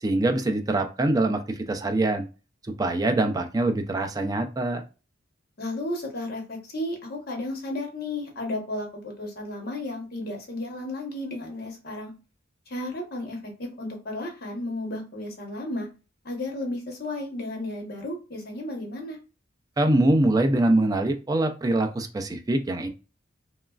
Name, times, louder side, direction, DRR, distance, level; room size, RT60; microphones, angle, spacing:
voice 1, 0.0-2.3 2.6-4.8 19.8-22.9, right 2 dB, 20° right, 5 dB, 0.3 m, -24 dB
voice 2, 5.6-12.1 12.7-15.9 16.2-19.2, left 1 dB, 55° left, 1 dB, 0.9 m, -33 dB
3.0 x 2.3 x 2.3 m, 0.32 s
head